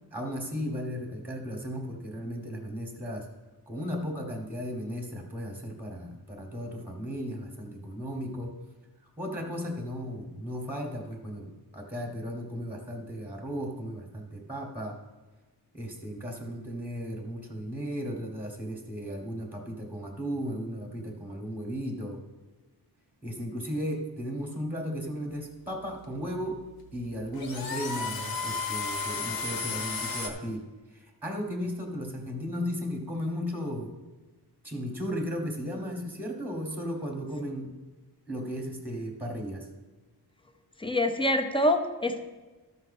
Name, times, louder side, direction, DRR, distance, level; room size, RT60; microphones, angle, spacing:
voice 1, 0.1-3.3 3.7-8.5 9.2-15.0 15.7-22.2 23.2-26.6 26.9-30.6 30.9-33.9 34.6-37.7 38.3-39.7, equal, 5° right, 2 dB, 1.1 m, -35 dB
sound 1, 25.3-30.3, left 4 dB, 60° left, 1.1 m, -34 dB
voice 2, 40.8-42.2, left 1 dB, 15° left, 6 dB, 0.6 m, -25 dB
13.0 x 5.5 x 4.1 m, 1.2 s
wide cardioid pair, 170°, 41 cm